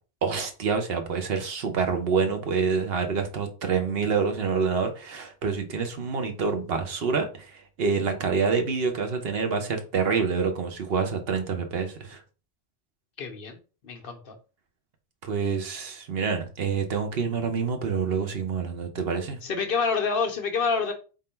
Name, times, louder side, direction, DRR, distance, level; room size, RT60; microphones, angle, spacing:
voice 1, 0.2-12.2 15.2-19.4, right 5 dB, 65° right, 1.0 m, -27 dB
voice 2, 13.2-14.4 19.4-20.9, left 5 dB, 60° left, 1.0 m, -28 dB
3.7 x 2.6 x 4.4 m
omnidirectional pair, 1.1 m